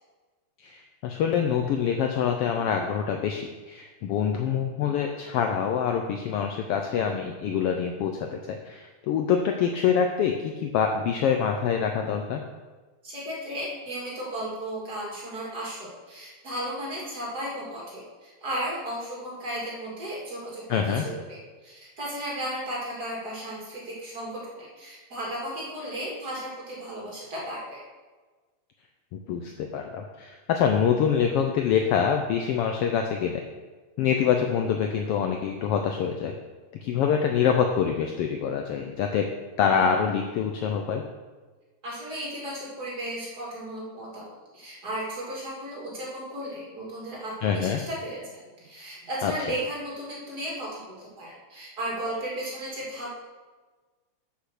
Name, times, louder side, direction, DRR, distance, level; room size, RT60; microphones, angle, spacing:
voice 1, 0.6-12.4 20.7-21.0 29.1-33.4 34.0-36.3 36.8-39.3 39.6-41.0 47.4-47.8 49.2-49.3, left 7 dB, 90° left, 4 dB, 1.3 m, -25 dB
voice 2, 13.0-27.8 41.8-44.2 44.5-53.2, right 1 dB, 35° right, -5 dB, 2.8 m, -35 dB
8.3 x 6.1 x 6.5 m, 1.3 s
omnidirectional pair, 3.4 m